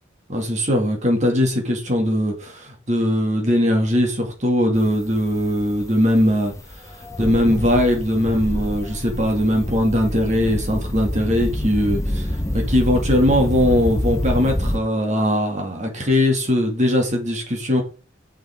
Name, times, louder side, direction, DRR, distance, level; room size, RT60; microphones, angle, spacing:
voice 1, 0.3-17.8, equal, 35° right, 2.3 m, -20 dB
sound 1, 4.8-14.8, left 1 dB, 15° left, 1.0 m, -26 dB
7.9 x 7.1 x 3.7 m
head